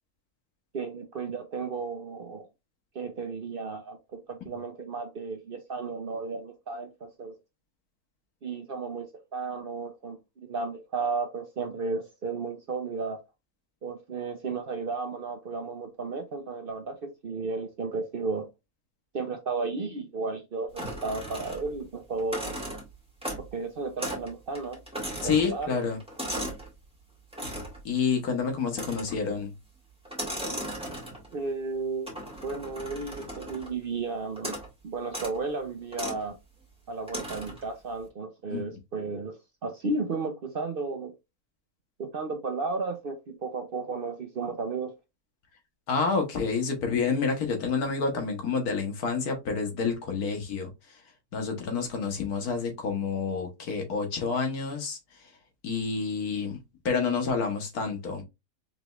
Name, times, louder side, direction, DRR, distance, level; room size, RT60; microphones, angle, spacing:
voice 1, 0.7-2.5 2.9-7.3 8.4-13.2 13.8-18.5 19.1-22.6 23.5-24.8 25.2-25.8 31.3-32.1 32.4-34.6 34.8-36.4 36.9-39.4 39.6-41.1 42.0-44.9, right 4 dB, 50° right, 0.7 m, -33 dB
sound 1, 20.8-21.8 22.2-23.6 24.0-24.3 24.5-26.7 27.3-27.8 28.7-29.3 30.0-31.3 32.1-33.8 34.4-34.7 35.1-35.4 35.9-36.2 37.1-37.6, right 1 dB, 5° right, 1.5 m, -37 dB
voice 2, 25.2-26.0 27.8-29.5 38.5-38.7 45.9-50.7 51.3-55.0 55.6-56.6 56.8-58.2, left 5 dB, 85° left, 1.6 m, -28 dB
5.0 x 3.1 x 2.3 m
omnidirectional pair, 1.6 m